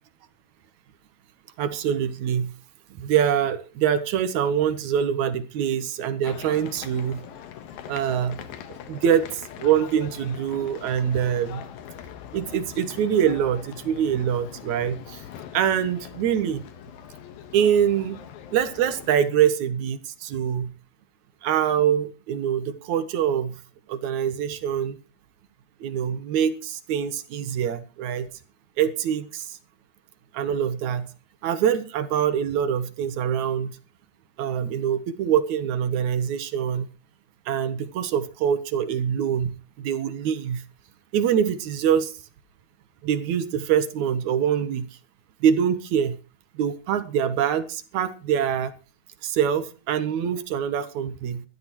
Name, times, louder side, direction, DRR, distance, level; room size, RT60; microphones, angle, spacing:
voice 1, 1.6-2.5 3.0-7.2 7.9-8.4 8.7-11.6 12.3-15.2 15.5-16.6 17.5-18.2 18.5-20.7 21.4-23.6 23.9-25.0 25.8-28.3 28.8-29.6 30.3-31.1 31.4-33.8 34.4-36.9 37.5-40.6 41.1-42.2 43.0-44.9 45.4-46.2 46.6-48.7 49.2-51.4, right 8 dB, 65° right, 12 dB, 2.1 m, -24 dB
sound 1, 6.2-19.2, left 9 dB, 80° left, 3.0 m, -42 dB
21.5 x 13.5 x 3.1 m, 0.33 s
omnidirectional pair, 4.2 m